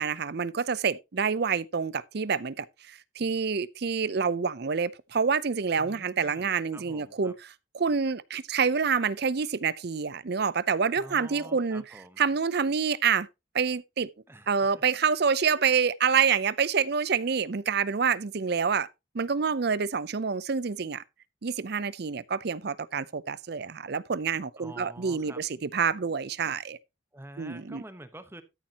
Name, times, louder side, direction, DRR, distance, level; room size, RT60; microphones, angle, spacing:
voice 1, 0.0-7.3 7.7-11.8 12.2-13.3 13.5-14.1 14.5-18.9 19.1-21.0 21.4-26.8 27.4-27.8, right 6 dB, 55° right, 0.6 m, -27 dB
voice 2, 5.8-7.4 10.9-12.2 14.3-14.8 24.6-25.4 27.1-28.4, right 1 dB, 10° right, 1.0 m, -47 dB
13.0 x 7.3 x 2.9 m
head